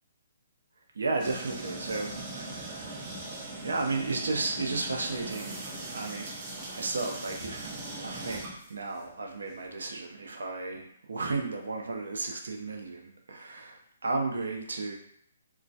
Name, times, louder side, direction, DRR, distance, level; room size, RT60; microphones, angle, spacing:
voice 1, 0.9-2.9 3.6-6.3 6.7-8.4 8.7-15.0, right 3 dB, 85° right, 2 dB, 0.5 m, -34 dB
sound 1, 1.2-9.1, right 2 dB, 30° right, 0.5 m, -40 dB
2.2 x 2.1 x 2.6 m, 0.68 s
hypercardioid pair, 155°, 0 cm